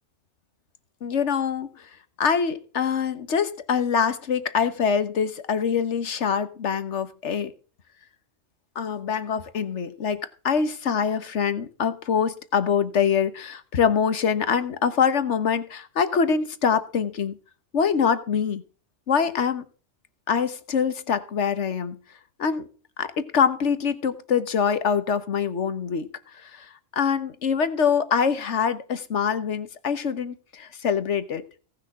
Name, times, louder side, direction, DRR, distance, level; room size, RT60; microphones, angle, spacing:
voice 1, 1.0-1.7 2.2-7.5 8.7-17.4 17.7-18.6 19.1-19.6 20.3-22.0 22.4-22.7 23.0-26.1 26.4-31.4, left 6 dB, 80° left, 13 dB, 1.5 m, -24 dB
17.5 x 6.4 x 4.8 m, 0.38 s
omnidirectional pair, 1.2 m